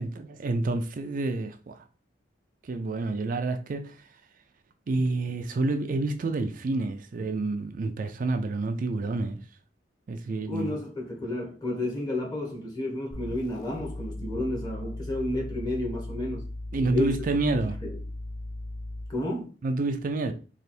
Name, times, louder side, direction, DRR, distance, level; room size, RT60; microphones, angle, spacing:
voice 1, 0.0-1.8 2.6-4.1 4.9-9.4 10.1-10.8 16.7-17.8 19.6-20.3, right 2 dB, 45° right, 0.4 m, -29 dB
voice 2, 10.4-16.4 16.9-17.1 17.5-18.0 19.1-19.5, left 1 dB, 20° left, 1.2 m, -31 dB
sound 1, 13.1-19.3, left 1 dB, 45° left, 0.5 m, -37 dB
3.2 x 2.5 x 4.2 m
head